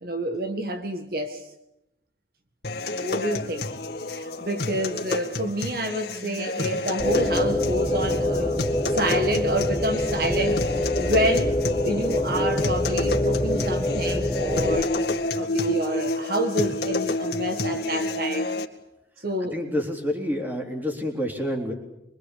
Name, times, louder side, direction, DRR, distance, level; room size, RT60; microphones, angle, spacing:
voice 1, 0.0-1.5 3.0-3.7 4.1-8.6 8.9-11.6 11.8-18.5 19.2-19.6, right 1 dB, 55° right, 1.7 m, -28 dB
sound 1, 2.6-18.7, left 2 dB, 60° left, 2.0 m, -30 dB
sound 2, 7.0-14.8, left 1 dB, 5° left, 1.4 m, -25 dB
voice 2, 19.4-21.7, equal, 10° right, 3.7 m, -28 dB
24.5 x 24.0 x 8.5 m
head